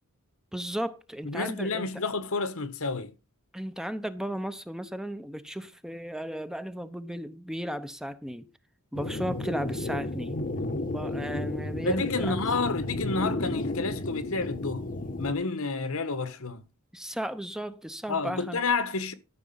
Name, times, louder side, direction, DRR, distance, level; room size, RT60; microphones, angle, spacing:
voice 1, 0.5-1.8 3.5-8.5 8.9-10.4 10.9-12.4 16.9-18.6, equal, ahead, 0.7 m, -35 dB
voice 2, 1.2-3.1 11.8-14.8 15.2-16.6 18.1-19.1, left 3 dB, 65° left, 1.5 m, -30 dB
sound 1, 8.9-15.3, left 2 dB, 40° left, 1.1 m, -33 dB
13.5 x 6.2 x 5.5 m
head